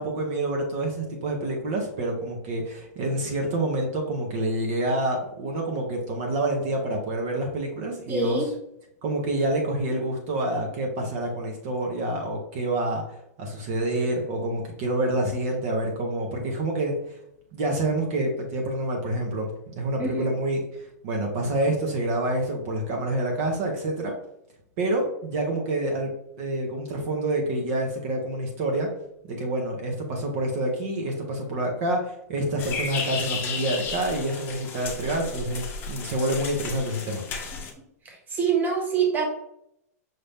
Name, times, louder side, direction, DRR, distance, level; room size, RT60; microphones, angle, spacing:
voice 1, 0.0-8.5 9.0-13.0 13.4-17.2 17.5-24.1 24.8-26.1 26.4-28.9 29.2-37.2, right 1 dB, 50° right, 0 dB, 1.0 m, -27 dB
voice 2, 8.1-8.4 20.0-20.3 38.0-39.2, right 5 dB, 20° right, -1 dB, 1.3 m, -25 dB
sound 1, 32.6-37.7, left 5 dB, 25° left, 0.8 m, -33 dB
5.7 x 2.6 x 3.5 m, 0.77 s
hypercardioid pair, 140°, 9 cm